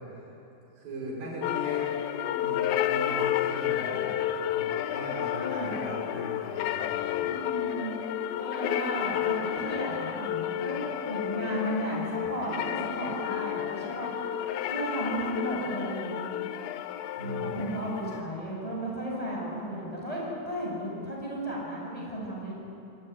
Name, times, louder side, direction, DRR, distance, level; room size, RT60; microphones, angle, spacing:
voice 1, 0.8-1.9 2.3-4.2 4.5-7.3 17.2-17.6, right 1 dB, 75° right, -4 dB, 7.9 m, -40 dB
sound 1, 1.4-18.2, left 11 dB, 85° left, 2.7 m, -31 dB
voice 2, 2.0-2.5 5.3-5.9 7.2-7.9 8.4-14.1 14.6-16.3 17.2-22.5, equal, 10° left, -4 dB, 7.6 m, -34 dB
28.0 x 18.5 x 9.6 m, 2.9 s
omnidirectional pair, 4.1 m